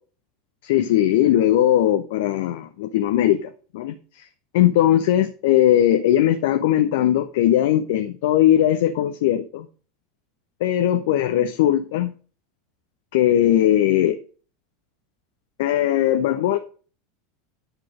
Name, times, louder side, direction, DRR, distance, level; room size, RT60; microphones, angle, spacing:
voice 1, 0.6-4.2 4.5-9.7 10.6-12.1 13.1-14.2 15.6-16.6, left 12 dB, 60° left, 8 dB, 0.7 m, -19 dB
10.0 x 5.9 x 5.2 m, 0.39 s
figure-of-eight pair, 80°, 0 cm